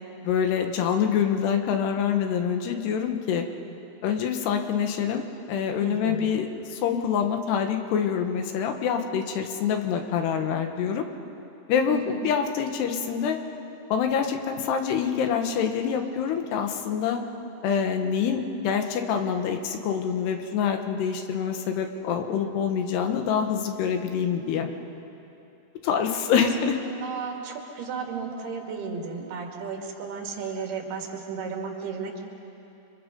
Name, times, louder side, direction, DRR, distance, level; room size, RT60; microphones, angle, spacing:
voice 1, 0.2-3.5 4.0-11.1 11.7-13.4 13.9-17.2 17.6-24.7 25.8-26.8, left 7 dB, 85° left, 5 dB, 3.4 m, -26 dB
voice 2, 5.8-6.3 11.9-12.2 26.4-26.5 26.8-32.2, right 5 dB, 75° right, 0 dB, 4.3 m, -34 dB
29.5 x 24.5 x 5.3 m, 2.9 s
omnidirectional pair, 4.6 m